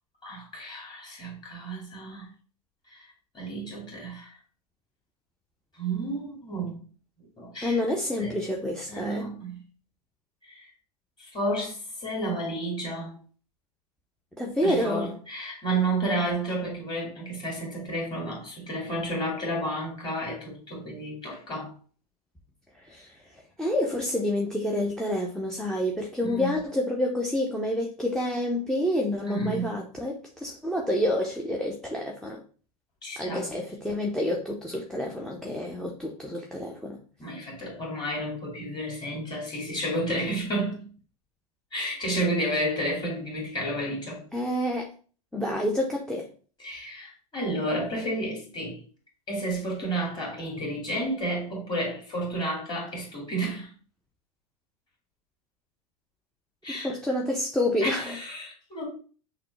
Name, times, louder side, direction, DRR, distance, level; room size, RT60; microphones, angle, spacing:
voice 1, 0.2-2.3 2.9-3.1 3.3-4.4 5.7-6.8 7.4-7.8 8.2-8.3 8.9-9.6 10.4-10.7 11.2-13.1 14.6-21.7 26.2-26.6 29.3-29.9 33.0-33.5 37.2-40.9 41.7-44.2 46.6-48.8 49.3-53.7 56.6-57.0 57.8-58.8, right 1 dB, 20° left, 2.2 m, -31 dB
voice 2, 7.6-9.3 14.4-15.1 22.9-23.1 23.6-32.4 33.2-37.0 44.3-44.9 45.3-46.3 56.7-58.2, left 1 dB, 5° left, 0.6 m, -28 dB
5.8 x 2.2 x 3.2 m
hypercardioid pair, 90°, 20 cm